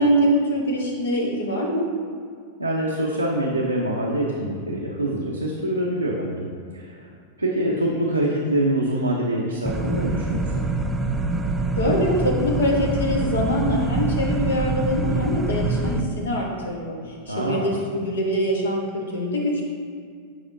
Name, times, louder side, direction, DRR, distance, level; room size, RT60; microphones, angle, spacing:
voice 1, 0.0-1.9 11.8-16.9 17.3-19.6, equal, 65° left, 0 dB, 1.1 m, -23 dB
voice 2, 2.6-6.5 6.7-7.1 7.4-10.6 17.3-17.8, right 1 dB, 85° right, -3 dB, 0.6 m, -25 dB
sound 1, 9.7-16.0, right 3 dB, 10° right, 0.4 m, -25 dB
7.7 x 4.9 x 2.6 m, 2.1 s
figure-of-eight pair, 90°, 0 cm